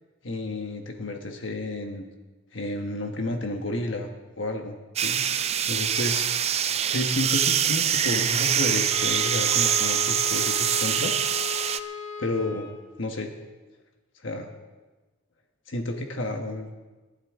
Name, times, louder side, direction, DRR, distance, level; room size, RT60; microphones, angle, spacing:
voice 1, 0.2-2.0 2.5-4.1 4.4-5.2 5.7-6.3 6.9-11.3 12.2-12.7 13.0-13.3 14.2-14.5 15.7-16.9, left 2 dB, 70° left, 3 dB, 1.3 m, -31 dB
sound 1, 5.0-11.8, right 9 dB, 30° right, 0.4 m, -24 dB
Wind instrument woodwind instrument, 8.9-12.9, left 7 dB, 90° left, 1.8 m, -36 dB
27.5 x 11.5 x 3.7 m, 1.2 s
head